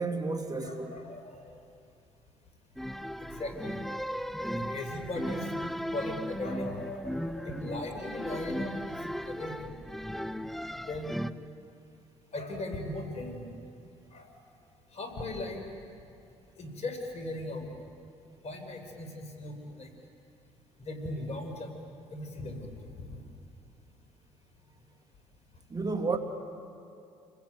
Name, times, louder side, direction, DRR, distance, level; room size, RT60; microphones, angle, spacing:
voice 1, 0.0-1.0 25.7-26.2, right 4 dB, 30° right, 2.9 m, -31 dB
voice 2, 0.6-1.5 3.2-3.8 4.5-5.5 5.9-9.0 9.3-9.8 10.8-11.3 12.3-13.5 14.1-14.4 14.9-15.6 16.6-17.7 18.4-19.9 20.8-21.8 22.1-22.7 23.1-23.2, left 2 dB, 50° left, 5.7 m, -38 dB
sound 1, 2.8-11.3, equal, ahead, 0.8 m, -36 dB
29.5 x 21.5 x 9.4 m
hypercardioid pair, 60°, 14 cm